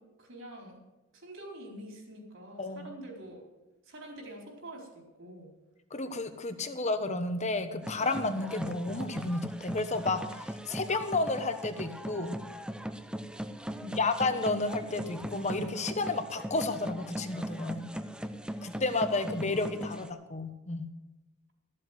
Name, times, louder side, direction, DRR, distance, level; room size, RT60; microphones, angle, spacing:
voice 1, 0.2-0.8 1.1-3.4 3.9-5.5 13.7-14.1 18.8-19.0 19.4-20.1, right 1 dB, 60° right, 0 dB, 4.1 m, -46 dB
voice 2, 2.6-2.9 5.9-12.4 14.0-17.9 18.6-20.9, left 3 dB, 30° left, 9 dB, 1.1 m, -32 dB
sound 1, 7.8-20.1, equal, 5° right, 0.5 m, -39 dB
14.0 x 7.8 x 8.0 m, 1.0 s
head